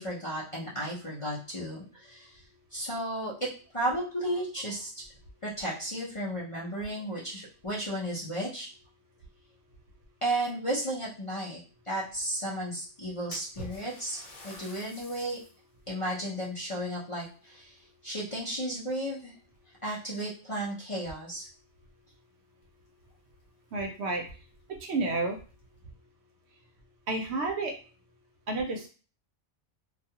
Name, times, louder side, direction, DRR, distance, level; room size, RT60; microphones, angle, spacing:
voice 1, 0.0-2.4 2.7-4.9 5.4-8.7 10.2-11.6 11.8-14.2 14.4-15.4 15.9-19.3 19.8-21.5, right 1 dB, 35° left, -6 dB, 0.6 m, -34 dB
Splash splatter, 13.3-15.6 16.1-16.2 17.1-18.2 18.5-19.0 19.8-19.9 20.3-20.4 22.6-22.7 23.0-23.1 23.7-23.8 24.2-24.3 25.0-25.6, left 1 dB, 75° left, 1.1 m, -48 dB
voice 2, 23.7-24.2 24.8-25.4 27.1-27.7 28.5-28.9, right 3 dB, 70° right, 3 dB, 0.8 m, -30 dB
2.3 x 2.3 x 2.7 m, 0.37 s
omnidirectional pair, 1.2 m